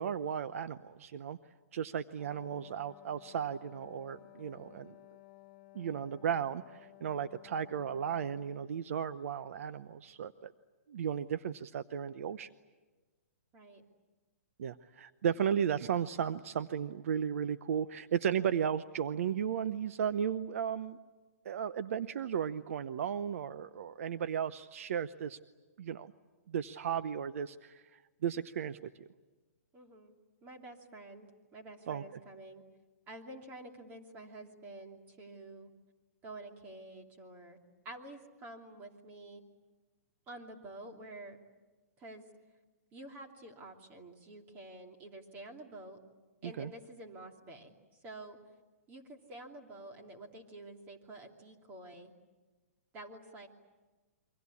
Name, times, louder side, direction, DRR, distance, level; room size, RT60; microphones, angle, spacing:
voice 1, 0.0-1.4 1.7-4.9 5.7-10.5 10.9-12.5 14.6-21.0 21.4-25.4 25.8-26.1 26.5-27.8 28.2-28.9 31.9-32.0 46.4-46.7, right 8 dB, 60° right, 13 dB, 0.8 m, -35 dB
Wind instrument woodwind instrument, 2.2-8.9, left 18 dB, 40° left, 1.3 m, -57 dB
voice 2, 13.5-13.8 29.7-32.6 33.1-35.7 36.2-37.6 37.8-39.4 40.3-41.4 42.0-42.3 42.9-46.0 46.4-47.8 48.0-48.4 48.9-52.1 52.9-53.5, right 2 dB, 20° right, 3 dB, 2.9 m, -49 dB
28.0 x 24.5 x 8.5 m, 1.2 s
hypercardioid pair, 155°, 8 cm